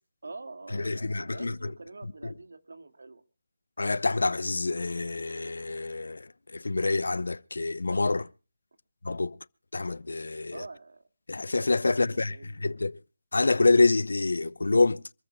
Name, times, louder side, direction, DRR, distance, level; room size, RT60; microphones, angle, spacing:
voice 1, 0.2-3.2 10.5-11.1 12.1-12.8, right 3 dB, 80° right, 2.1 m, -45 dB
voice 2, 0.7-1.5 3.8-8.3 9.0-9.4 9.7-10.6 11.3-13.0 13.3-15.0, left 3 dB, 85° left, 0.7 m, -26 dB
26.5 x 14.5 x 2.3 m
hypercardioid pair, 175°, 0 cm